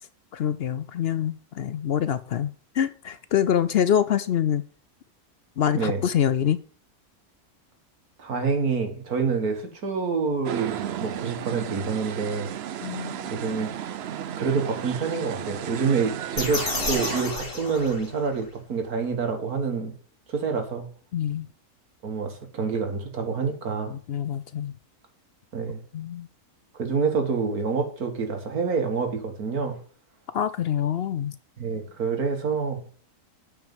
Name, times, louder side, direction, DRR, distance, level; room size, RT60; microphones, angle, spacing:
voice 1, 0.3-4.6 5.6-6.6 12.8-13.3 21.1-21.5 23.9-24.7 25.9-26.3 30.3-31.3, left 9 dB, 65° left, 0.6 m, -25 dB
voice 2, 8.2-12.5 13.2-13.7 14.4-19.9 20.3-20.9 22.0-23.9 25.5-25.8 26.8-29.8 31.6-32.9, right 5 dB, 80° right, 2.1 m, -27 dB
sound 1, 10.4-17.2, right 10 dB, 60° right, 0.7 m, -34 dB
sound 2, 16.4-18.5, left 2 dB, 40° left, 2.3 m, -31 dB
9.3 x 4.7 x 7.5 m
omnidirectional pair, 1.6 m